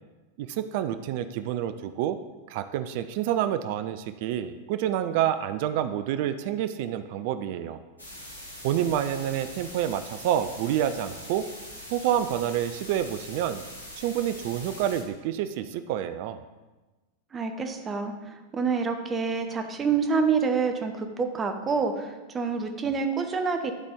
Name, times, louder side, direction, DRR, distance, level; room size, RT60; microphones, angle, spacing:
voice 1, 0.4-2.2 2.5-7.8 8.6-11.5 11.9-13.6 14.0-16.4, right 11 dB, 50° right, 11 dB, 0.3 m, -28 dB
sound 1, 8.0-15.0, left 1 dB, 90° right, 1.4 m, -43 dB
voice 2, 17.3-23.7, right 5 dB, 20° right, 6 dB, 0.7 m, -27 dB
11.0 x 4.1 x 3.7 m, 1.2 s
figure-of-eight pair, 90°, 0 cm